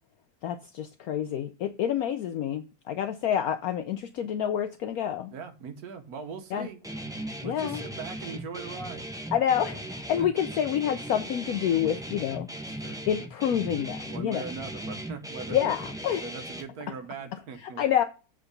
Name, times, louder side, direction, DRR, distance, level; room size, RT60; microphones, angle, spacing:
voice 1, 0.4-5.3 6.5-6.7 7.4-7.8 9.3-12.5 13.1-14.4 15.5-16.2 17.6-18.0, left 9 dB, 70° left, 1.0 m, -28 dB
voice 2, 5.3-6.8 7.4-9.1 10.2-10.3 12.5-13.0 14.1-15.6 16.1-17.8, right 5 dB, 65° right, 1.5 m, -40 dB
Guitar, 6.8-16.6, right 1 dB, 5° right, 0.7 m, -38 dB
7.7 x 4.0 x 5.2 m
omnidirectional pair, 1.8 m